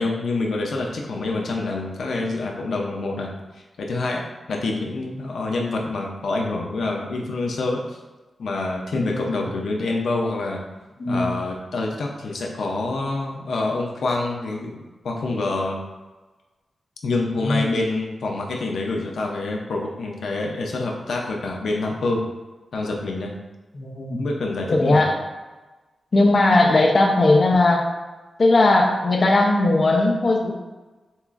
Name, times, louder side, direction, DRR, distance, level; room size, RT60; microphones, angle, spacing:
voice 1, 0.0-8.0 8.4-10.6 11.1-15.8 17.0-22.2 22.7-23.3 24.2-25.1, left 2 dB, 90° left, 0 dB, 0.5 m, -26 dB
voice 2, 9.0-9.3 11.0-11.3 17.4-17.6 23.7-24.3 24.7-25.2 26.1-27.9 28.4-30.5, left 2 dB, 40° left, 0 dB, 0.6 m, -18 dB
6.9 x 2.5 x 2.4 m, 1.2 s
wide cardioid pair, 155°, 0 cm